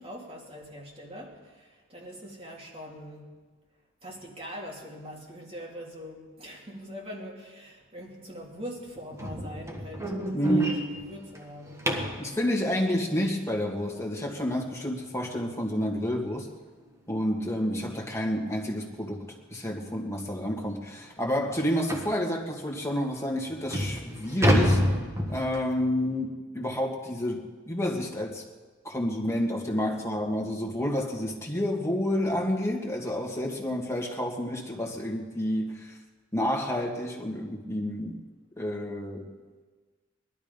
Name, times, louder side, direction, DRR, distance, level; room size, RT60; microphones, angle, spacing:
voice 1, 0.0-3.4 4.0-12.0, equal, 30° right, -2 dB, 3.0 m, -43 dB
sound 1, 9.2-12.3 15.1-15.2 15.7-15.9 16.2-16.3 16.8-16.9 18.0-18.1 18.5-18.7 19.3-19.4 19.8-19.9 20.4-20.5 21.9-22.2 22.9-23.0 23.5-25.8, equal, 15° right, 1.5 m, -28 dB
voice 2, 10.3-10.8 12.2-16.5 17.1-19.2 19.5-24.8 25.3-28.4 28.8-36.0 36.3-38.2 38.6-39.3, equal, 15° left, -1 dB, 2.0 m, -29 dB
19.5 x 12.5 x 5.3 m, 1.3 s
head